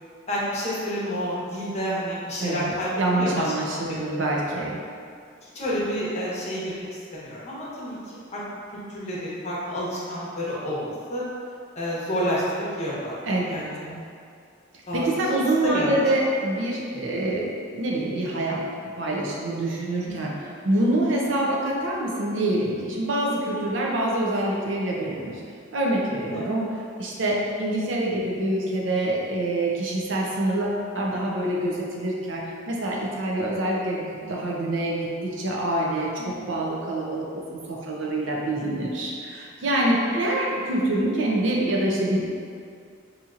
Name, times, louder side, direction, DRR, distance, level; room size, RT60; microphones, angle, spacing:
voice 1, 0.3-3.5 3.8-3.9 5.4-6.9 7.1-8.4 8.7-11.2 11.8-13.8 14.9-15.2 15.6-15.9 16.9-17.1 20.0-20.1 26.3-26.4 34.2-34.3 36.2-36.5 38.6-39.0 39.8-40.0, equal, 35° left, -7 dB, 0.8 m, -30 dB
voice 2, 2.4-4.8 13.3-14.0 14.9-17.5 17.7-20.3 20.6-25.4 25.7-26.7 27.0-42.3, right 1 dB, 70° right, -2 dB, 0.6 m, -26 dB
4.1 x 2.8 x 2.5 m, 2.3 s
head